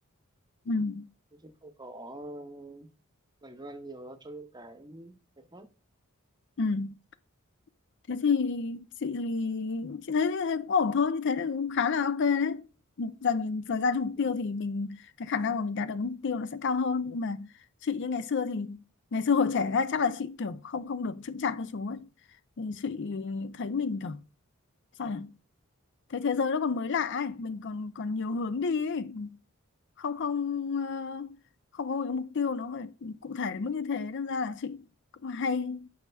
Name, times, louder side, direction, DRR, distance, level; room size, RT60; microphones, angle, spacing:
voice 1, 0.7-1.1 6.6-6.9 8.1-12.6 13.0-17.5 17.8-18.8 19.1-22.1 22.6-24.2 25.0-25.3 26.1-29.4 30.0-31.4 31.7-34.8 35.2-35.9, left 5 dB, 55° left, 0.5 m, -30 dB
voice 2, 1.3-2.9 3.4-5.7, right 1 dB, 20° right, 0.8 m, -45 dB
8.7 x 6.3 x 2.3 m
head